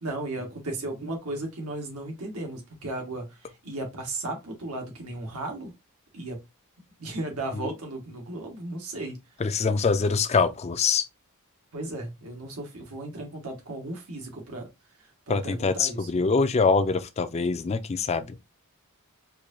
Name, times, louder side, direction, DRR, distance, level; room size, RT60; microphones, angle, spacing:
voice 1, 0.0-3.2 3.6-5.7 6.1-6.4 7.0-9.2 11.7-14.7 15.3-16.0, right 2 dB, 90° right, 1.5 m, -35 dB
voice 2, 9.4-11.1 15.3-18.4, left 4 dB, 30° left, 0.4 m, -24 dB
4.5 x 2.7 x 2.6 m
head